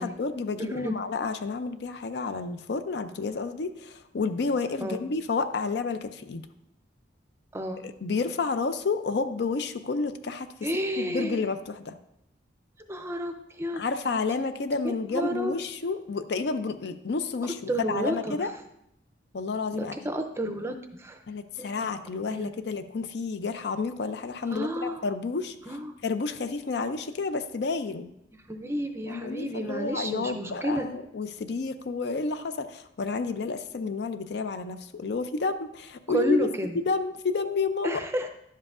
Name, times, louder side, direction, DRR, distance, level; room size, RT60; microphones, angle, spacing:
voice 1, 0.0-6.5 7.8-10.7 11.0-12.0 13.7-17.6 17.9-18.5 19.3-20.0 21.3-25.6 26.0-28.1 29.1-36.5 36.8-38.0, left 4 dB, 60° left, 10 dB, 0.4 m, -30 dB
voice 2, 0.6-1.0 4.8-5.0 7.5-7.8 10.6-11.5 12.9-13.8 14.8-15.5 17.7-18.4 19.7-21.2 21.6-21.9 22.3-22.5 24.5-25.0 25.7-25.9 28.5-30.9 36.1-36.7 37.8-38.3, right 1 dB, 15° right, 6 dB, 0.5 m, -31 dB
11.0 x 7.5 x 2.4 m, 0.79 s
head